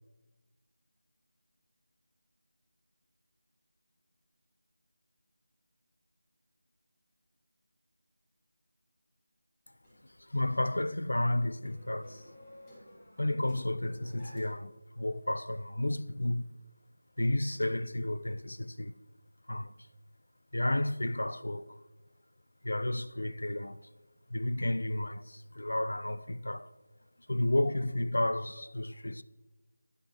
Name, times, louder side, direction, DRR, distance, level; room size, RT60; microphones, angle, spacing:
sound 1, 9.8-14.8, equal, 15° left, 1.7 m, -55 dB
voice 1, 10.2-12.2 13.2-16.5 17.2-18.9 19.5-19.7 20.5-21.8 22.6-23.8 24.3-26.7 27.3-29.2, left 1 dB, 70° left, 0.3 m, -32 dB
9.4 x 6.5 x 2.9 m
figure-of-eight pair, 165°, 0 cm